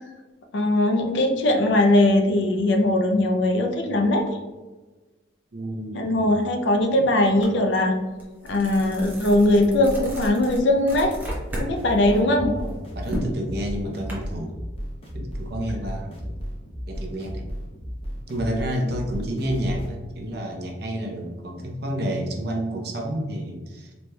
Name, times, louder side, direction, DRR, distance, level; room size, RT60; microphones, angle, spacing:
voice 1, 0.5-4.4 5.9-8.0 8.4-11.1 11.6-12.5, left 1 dB, 65° left, 4 dB, 0.5 m, -20 dB
voice 2, 5.5-6.4 6.9-7.0 12.1-14.5 15.1-16.3 16.9-17.5 18.3-23.9, equal, 55° right, 1 dB, 0.7 m, -30 dB
sound 1, 7.4-7.6 8.0-11.7 12.1-14.1, equal, 10° right, 0.8 m, -33 dB
sound 2, 11.2-19.9, equal, 30° left, 0.9 m, -34 dB
4.0 x 3.2 x 2.3 m, 1.2 s
head